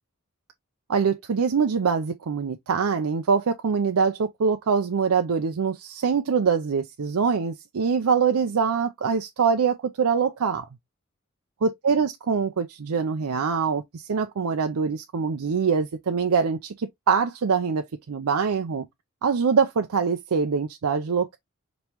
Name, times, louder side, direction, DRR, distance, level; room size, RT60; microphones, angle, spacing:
voice 1, 0.9-10.7 11.6-18.8 19.2-21.4, right 5 dB, 90° right, 0.5 m, -24 dB
5.3 x 3.0 x 2.9 m
head